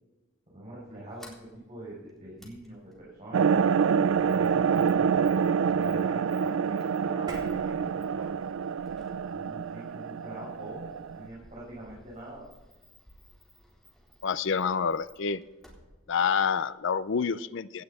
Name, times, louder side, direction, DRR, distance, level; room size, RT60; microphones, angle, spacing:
voice 1, 0.5-3.7 4.2-5.3 5.6-8.3 9.2-12.5, right 1 dB, 35° right, -6 dB, 5.9 m, -44 dB
Sliding door, 0.9-17.2, equal, ahead, 4.0 m, -58 dB
sound 1, 3.3-11.3, right 6 dB, 75° right, 0.4 m, -27 dB
sound 2, 7.3-11.9, equal, 20° right, 2.6 m, -49 dB
voice 2, 14.2-15.4 16.1-17.8, left 6 dB, 65° left, 15 dB, 0.5 m, -28 dB
18.0 x 11.5 x 4.2 m, 1.2 s
head